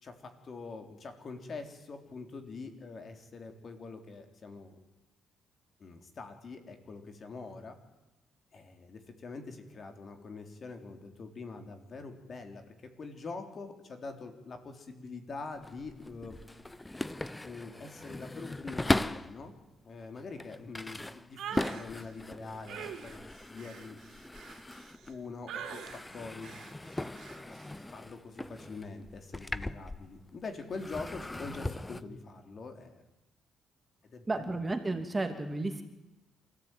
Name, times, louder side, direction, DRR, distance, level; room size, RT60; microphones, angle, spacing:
voice 1, 0.0-4.8 5.8-7.8 8.5-16.4 17.4-19.5 19.8-24.0 25.1-26.5 27.3-27.6 27.9-33.0 34.0-34.5, left 4 dB, 45° left, 6 dB, 3.7 m, -44 dB
sound 1, 15.5-19.4 20.0-25.2 25.5-30.4 30.7-32.0, left 1 dB, 15° left, 0.8 m, -38 dB
sound 2, 21.4-21.8 22.7-25.1 25.5-26.0 26.4-26.7 27.2-27.4, right 8 dB, 75° right, 3.7 m, -43 dB
voice 2, 34.3-35.8, right 2 dB, 20° right, 6 dB, 2.7 m, -32 dB
27.0 x 14.5 x 9.3 m, 0.97 s
cardioid pair, 90°, 0 cm